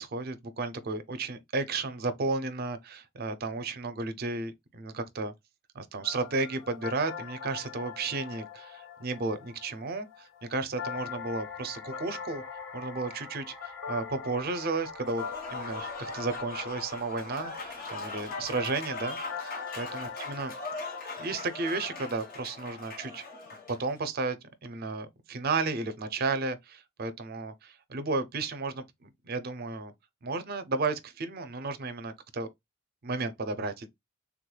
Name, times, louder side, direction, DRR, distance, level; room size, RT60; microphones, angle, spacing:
voice 1, 0.0-5.3 5.7-12.4 12.7-20.5 21.2-23.2 23.8-24.4 24.6-29.9 30.2-32.5 33.0-33.9, right 3 dB, 50° right, 0.5 m, -33 dB
sound 1, 6.0-22.4, left 6 dB, 70° left, 0.6 m, -42 dB
sound 2, 10.9-19.4, equal, 5° left, 0.6 m, -51 dB
Applause / Crowd, 15.0-23.9, left 3 dB, 45° left, 1.1 m, -41 dB
3.5 x 3.1 x 2.2 m
head